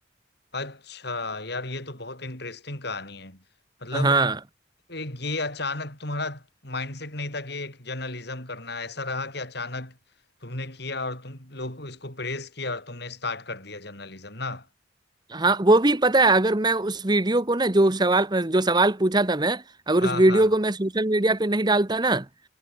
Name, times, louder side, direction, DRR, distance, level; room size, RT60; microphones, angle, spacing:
voice 1, 0.5-3.4 3.8-4.2 4.9-10.0 10.4-14.7 20.0-20.5, left 3 dB, 55° left, 7.1 m, -33 dB
voice 2, 3.9-4.4 15.3-22.2, right 2 dB, 20° right, 1.0 m, -21 dB
head